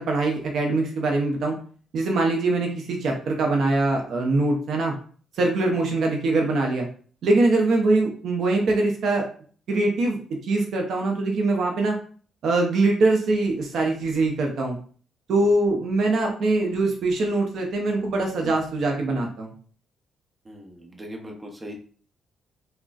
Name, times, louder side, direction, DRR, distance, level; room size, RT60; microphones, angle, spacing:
voice 1, 0.0-1.6 1.9-4.9 5.3-6.9 7.2-9.3 9.7-10.2 10.4-12.0 12.4-14.8 15.3-19.5, right 2 dB, 65° right, 1 dB, 0.6 m, -23 dB
voice 2, 20.4-21.7, equal, 25° right, 1 dB, 0.7 m, -39 dB
3.9 x 2.1 x 2.4 m, 0.44 s
cardioid pair, 90°, 0 cm